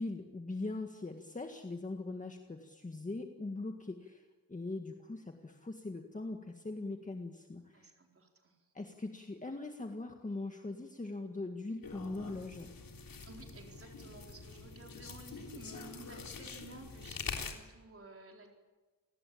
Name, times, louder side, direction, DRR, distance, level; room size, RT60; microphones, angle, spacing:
voice 1, 0.0-4.2 4.5-7.9 8.7-12.7, left 2 dB, 20° left, 4 dB, 1.8 m, -41 dB
voice 2, 7.7-8.7 13.2-18.5, right 2 dB, 40° right, 1 dB, 4.4 m, -53 dB
sound 1, 11.8-17.5, left 5 dB, 75° left, 3.5 m, -45 dB
28.0 x 19.5 x 8.7 m, 1.2 s
wide cardioid pair, 155°, 34 cm